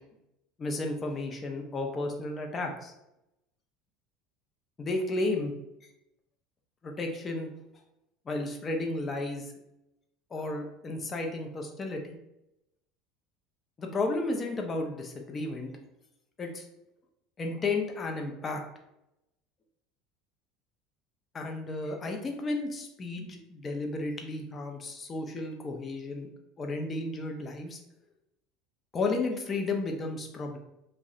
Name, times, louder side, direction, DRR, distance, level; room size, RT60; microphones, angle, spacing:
voice 1, 0.6-2.9 4.8-5.5 6.8-7.5 8.3-9.5 10.3-12.2 13.8-15.7 16.4-16.7 17.4-18.6 21.3-26.3 26.6-27.8 28.9-30.6, left 2 dB, 30° left, 3 dB, 0.4 m, -33 dB
2.6 x 2.0 x 2.4 m, 0.87 s
supercardioid pair, 105°, 0 cm